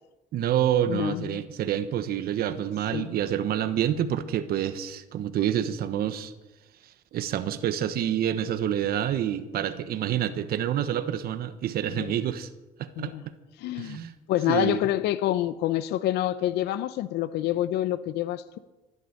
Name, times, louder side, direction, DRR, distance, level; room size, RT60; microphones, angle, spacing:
voice 1, 0.3-6.3 7.1-12.5 12.8-13.1 13.8-14.1 14.5-14.8, right 10 dB, 65° right, 1.2 m, -27 dB
voice 2, 0.9-1.4 2.9-3.1 11.9-12.1 13.0-13.2 13.6-14.0 14.3-18.6, left 13 dB, 80° left, 0.8 m, -27 dB
13.0 x 11.0 x 10.0 m
cardioid pair, 110°, 17 cm